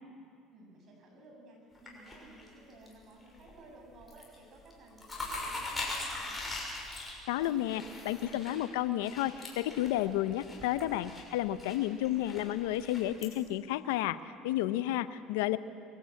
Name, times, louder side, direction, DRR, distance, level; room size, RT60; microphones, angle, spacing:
voice 1, 0.5-6.5 15.0-15.9, right 1 dB, 50° right, 1 dB, 6.8 m, -55 dB
sound 1, 1.7-2.9 3.3-3.7 3.9-4.3 4.6-13.3, left 2 dB, 15° left, 6.1 m, -41 dB
voice 2, 7.3-14.2 14.4-15.6, left 13 dB, 90° left, 14 dB, 0.7 m, -31 dB
23.0 x 15.0 x 8.5 m, 2.5 s
supercardioid pair, 100°, 0 cm